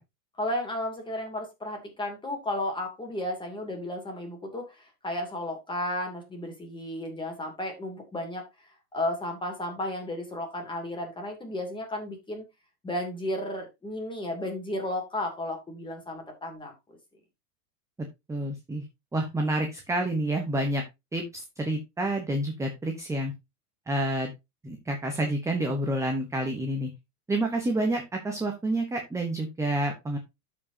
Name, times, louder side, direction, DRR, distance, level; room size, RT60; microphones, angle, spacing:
voice 1, 0.4-12.4 12.8-16.7, left 1 dB, 10° left, 2 dB, 2.6 m, -33 dB
voice 2, 18.3-18.8 19.1-20.8 21.1-23.3 23.9-24.3 24.6-26.9 27.3-30.2, right 1 dB, 5° right, 3 dB, 0.9 m, -28 dB
12.5 x 5.0 x 2.7 m, 0.21 s
supercardioid pair, 140°, 49 cm